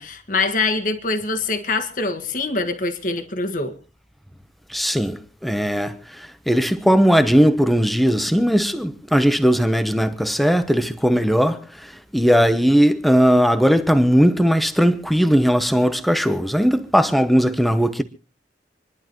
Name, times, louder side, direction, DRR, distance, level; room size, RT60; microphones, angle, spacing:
voice 1, 0.0-3.7, left 3 dB, 45° left, 1.7 m, -24 dB
voice 2, 4.7-11.6 12.1-18.0, equal, ahead, 0.9 m, -18 dB
27.5 x 11.5 x 3.1 m
head